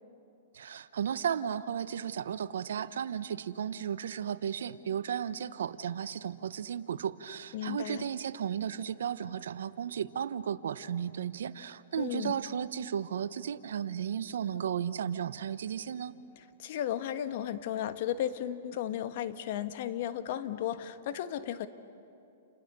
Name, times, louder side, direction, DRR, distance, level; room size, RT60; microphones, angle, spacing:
voice 1, 0.5-16.1, right 8 dB, 75° right, 14 dB, 1.0 m, -34 dB
voice 2, 7.5-8.1 12.0-12.4 16.6-21.7, left 11 dB, 55° left, 10 dB, 1.4 m, -34 dB
29.5 x 29.5 x 6.8 m, 2.7 s
hypercardioid pair, 130°, 0 cm